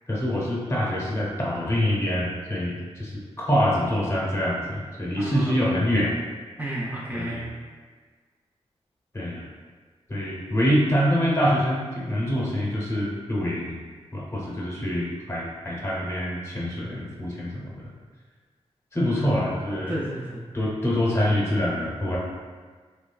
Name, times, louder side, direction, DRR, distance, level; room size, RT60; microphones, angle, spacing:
voice 1, 0.1-6.1 7.1-7.5 9.1-9.4 10.1-13.8 14.1-17.9 18.9-20.0 20.5-22.2, equal, 25° left, -5 dB, 0.7 m, -25 dB
voice 2, 5.2-5.5 6.6-7.5 19.0-19.3 19.9-20.4, right 1 dB, 15° right, -6 dB, 0.3 m, -32 dB
3.0 x 2.3 x 2.3 m, 1.5 s
wide cardioid pair, 85°, 11 cm